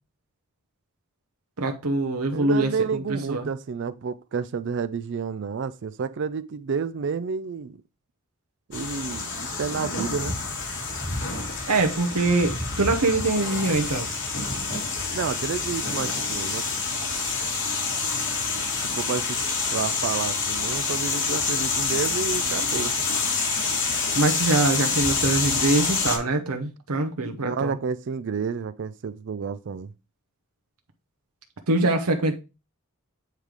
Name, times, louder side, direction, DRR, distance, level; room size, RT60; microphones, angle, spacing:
voice 1, 1.6-3.4 11.7-14.1 24.1-27.7 31.7-32.4, right 2 dB, 80° right, 0.9 m, -24 dB
voice 2, 2.3-7.8 8.7-10.4 15.1-16.7 19.0-19.4 19.7-22.9 27.4-29.9, right 5 dB, 55° right, 0.4 m, -30 dB
sound 1, 8.7-26.2, left 4 dB, 55° left, 2.9 m, -27 dB
9.3 x 3.2 x 5.0 m
head